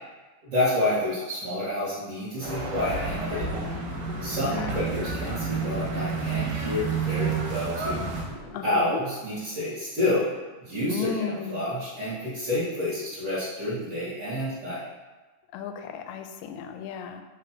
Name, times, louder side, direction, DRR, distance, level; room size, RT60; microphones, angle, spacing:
voice 1, 0.4-3.5 4.2-8.0 8.6-10.3 10.6-14.8, left 1 dB, 45° right, -14 dB, 2.7 m, -29 dB
sound 1, 2.4-9.9, right 1 dB, 20° right, 1.0 m, -45 dB
sound 2, 2.4-8.2, right 4 dB, 85° right, 2.8 m, -30 dB
voice 2, 4.3-4.8 8.5-9.0 10.9-11.7 15.5-17.2, left 6 dB, 80° left, 6 dB, 1.8 m, -35 dB
6.3 x 3.3 x 5.9 m, 1.2 s
omnidirectional pair, 3.8 m